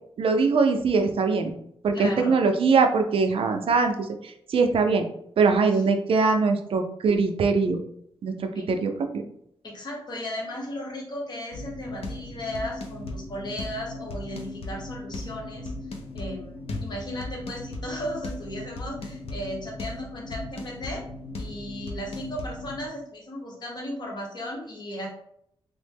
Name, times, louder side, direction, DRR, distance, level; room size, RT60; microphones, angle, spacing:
voice 1, 0.2-1.5 1.8-5.1 5.4-7.8 8.2-9.2, right 4 dB, 65° right, 6 dB, 0.4 m, -22 dB
voice 2, 1.9-2.4 5.7-5.8 8.5-8.7 9.6-15.7 16.1-21.0 21.4-25.1, equal, 45° left, -1 dB, 0.9 m, -35 dB
creepy drum, 11.5-22.9, left 2 dB, 75° left, 0.5 m, -37 dB
3.2 x 2.0 x 3.3 m, 0.70 s
wide cardioid pair, 145°, 10 cm